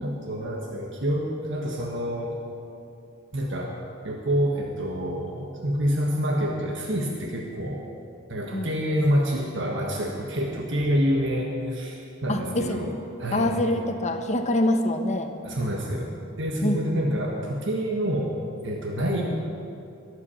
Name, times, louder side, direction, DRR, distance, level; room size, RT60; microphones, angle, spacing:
voice 1, 0.0-2.4 3.3-3.8 4.0-7.8 8.3-12.9 13.2-13.6 15.4-18.4 18.6-19.2, equal, 60° right, -1 dB, 1.6 m, -27 dB
voice 2, 12.3-12.9 13.3-15.3 16.6-17.0, left 1 dB, 35° left, 5 dB, 1.2 m, -25 dB
22.0 x 8.5 x 7.1 m, 2.6 s
head